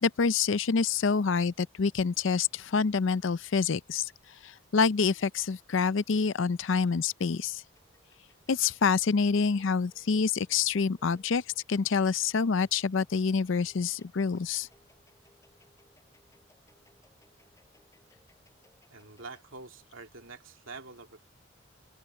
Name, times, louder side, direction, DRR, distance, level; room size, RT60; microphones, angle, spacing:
voice 1, 0.0-4.1 4.4-7.6 8.5-11.4 11.7-14.7, left 5 dB, 65° left, 0.5 m, -27 dB
sound 1, 6.9-19.4, left 1 dB, 15° left, 6.7 m, -67 dB
voice 2, 18.9-21.2, right 3 dB, 75° right, 2.8 m, -46 dB
open air
head